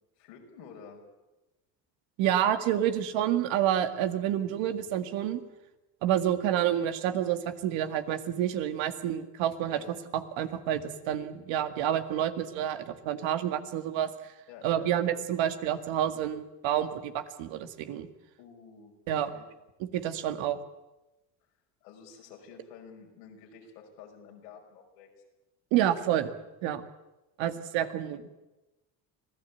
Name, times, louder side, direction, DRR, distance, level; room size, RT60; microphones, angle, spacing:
voice 1, 0.2-1.0 9.7-9.9 14.5-14.9 18.4-18.9 19.3-19.5 21.8-25.1, left 6 dB, 90° left, 1 dB, 5.6 m, -50 dB
voice 2, 2.2-5.4 6.0-9.8 10.1-14.1 14.6-18.1 19.1-19.3 19.9-20.6 25.7-26.3 26.6-26.8 27.4-28.2, right 11 dB, 75° right, 8 dB, 2.1 m, -28 dB
25.5 x 17.0 x 8.4 m, 1.0 s
supercardioid pair, 75°, 47 cm